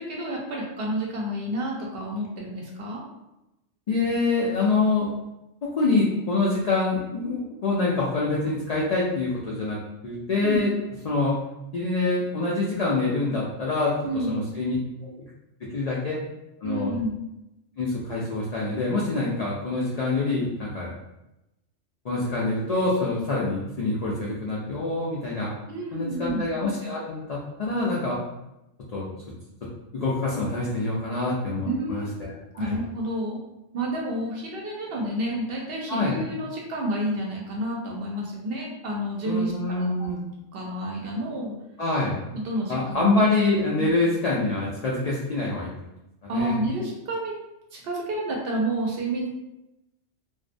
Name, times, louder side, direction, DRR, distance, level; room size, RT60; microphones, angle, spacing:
voice 1, 0.0-3.0 10.4-10.6 14.0-14.4 16.6-17.2 25.7-26.5 31.7-32.1 32.6-33.4 33.7-40.1 40.5-41.5 42.3-43.2 43.8-43.9 46.3-47.3 47.7-49.3, right 1 dB, 60° right, -2 dB, 0.7 m, -30 dB
voice 2, 3.9-5.1 5.6-9.8 10.0-10.7 11.0-11.4 11.7-14.8 15.0-15.3 15.7-16.2 16.6-16.9 17.8-20.9 22.0-25.5 25.9-28.2 28.9-29.1 29.9-32.8 35.9-36.2 39.2-40.2 41.8-42.2 42.7-45.7 46.2-46.6, left 3 dB, 70° left, -5 dB, 0.3 m, -25 dB
2.6 x 2.1 x 2.5 m, 0.92 s
omnidirectional pair, 1.2 m